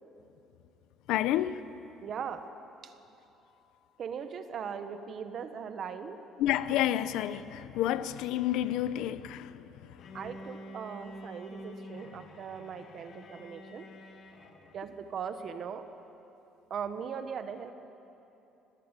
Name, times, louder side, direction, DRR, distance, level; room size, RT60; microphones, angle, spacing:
voice 1, 1.1-1.6 6.4-9.7, left 12 dB, 75° left, 0.8 m, -29 dB
voice 2, 2.0-2.5 2.8-2.9 4.0-6.2 9.1-9.2 10.1-13.9 14.7-15.8 16.7-17.7, right 7 dB, 40° right, 1.4 m, -39 dB
Bowed string instrument, 10.0-14.9, left 1 dB, 40° left, 2.1 m, -48 dB
25.5 x 19.5 x 8.4 m
cardioid pair, 170°, 0 cm